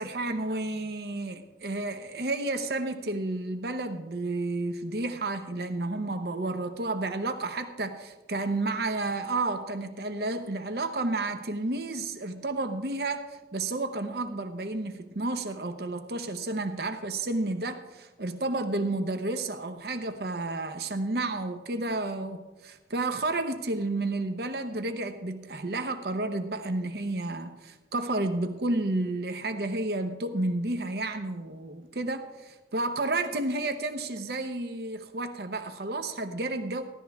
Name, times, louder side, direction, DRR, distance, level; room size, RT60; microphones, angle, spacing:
voice 1, 0.0-36.8, right 2 dB, 60° right, 8 dB, 0.8 m, -31 dB
15.5 x 11.5 x 3.5 m, 1.1 s
head